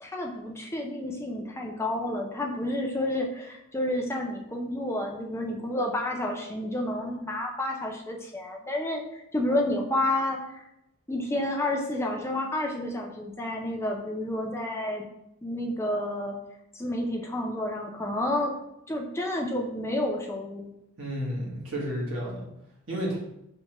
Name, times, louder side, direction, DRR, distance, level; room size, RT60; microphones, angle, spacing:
voice 1, 0.0-10.7 11.1-15.1 15.4-16.3 16.7-18.5 18.9-20.7, left 1 dB, 10° left, 1 dB, 0.4 m, -30 dB
voice 2, 21.0-22.4 22.9-23.2, equal, 60° right, -4 dB, 1.2 m, -31 dB
5.5 x 2.2 x 2.9 m, 0.83 s
head